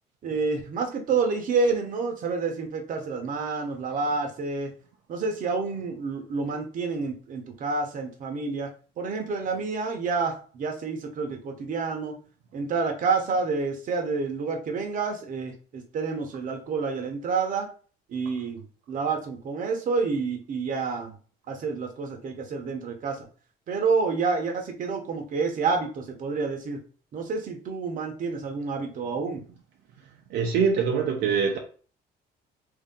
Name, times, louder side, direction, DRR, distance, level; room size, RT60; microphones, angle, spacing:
voice 1, 0.2-4.7 5.1-8.7 9.0-12.2 12.5-17.7 18.1-18.6 18.9-21.1 21.5-23.3 23.7-26.8 27.1-29.4, right 4 dB, 50° right, 1.0 m, -28 dB
voice 2, 30.3-31.6, right 6 dB, 75° right, 0.7 m, -23 dB
3.1 x 2.8 x 3.8 m
cardioid pair, 110°, 17 cm